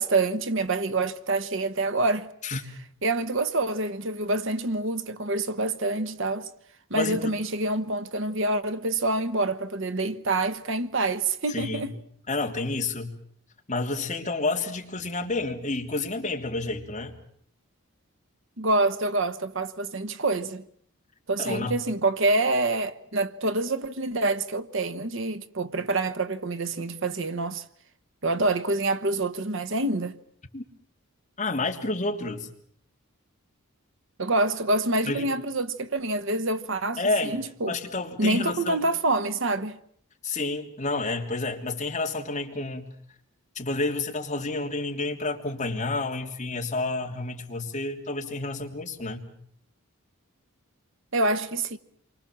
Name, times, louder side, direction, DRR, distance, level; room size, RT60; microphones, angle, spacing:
voice 1, 0.0-2.3 3.0-6.5 6.9-11.9 18.6-20.6 21.3-27.6 28.2-30.1 34.2-37.7 38.2-39.8 51.1-51.8, right 2 dB, 60° right, 1.1 m, -26 dB
voice 2, 6.9-7.3 11.5-11.9 12.3-13.2 13.7-17.2 21.4-21.8 30.5-30.6 31.4-32.5 35.0-35.3 37.0-38.8 40.2-42.8 43.5-49.3, left 3 dB, 35° left, 3.1 m, -30 dB
28.0 x 24.5 x 7.4 m
head